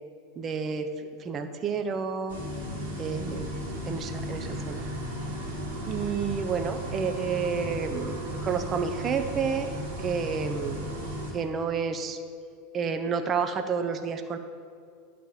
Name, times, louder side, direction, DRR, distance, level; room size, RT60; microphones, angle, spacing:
voice 1, 0.4-2.4 3.0-3.5 3.9-4.8 5.9-9.7 10.0-10.8 11.3-12.2 12.7-14.4, right 5 dB, 30° right, 7 dB, 0.7 m, -30 dB
sound 1, 2.3-11.3, right 1 dB, 80° right, 2.3 m, -35 dB
10.5 x 4.2 x 7.5 m, 2.3 s
figure-of-eight pair, 85°, 0 cm